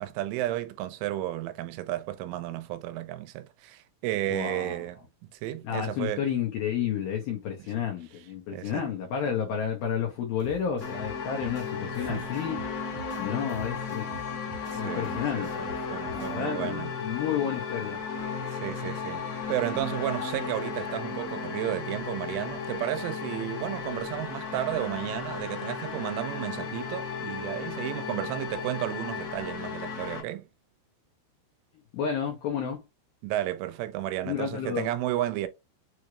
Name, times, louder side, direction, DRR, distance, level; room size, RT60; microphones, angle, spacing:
voice 1, 0.0-3.4 4.0-5.0 5.4-6.3 8.5-8.9 12.1-12.3 14.8-15.5 15.9-16.9 18.6-19.2 19.5-30.4 33.2-35.5, right 14 dB, 85° right, 3.2 m, -32 dB
voice 2, 4.3-4.8 5.6-12.6 13.2-14.1 14.7-15.5 16.1-18.0 31.9-32.8 34.2-34.9, left 8 dB, 85° left, 2.0 m, -31 dB
sound 1, 10.4-16.4, right 1 dB, 70° right, 0.6 m, -46 dB
sound 2, 10.8-30.2, left 5 dB, 55° left, 1.8 m, -35 dB
7.0 x 3.2 x 2.4 m
omnidirectional pair, 5.6 m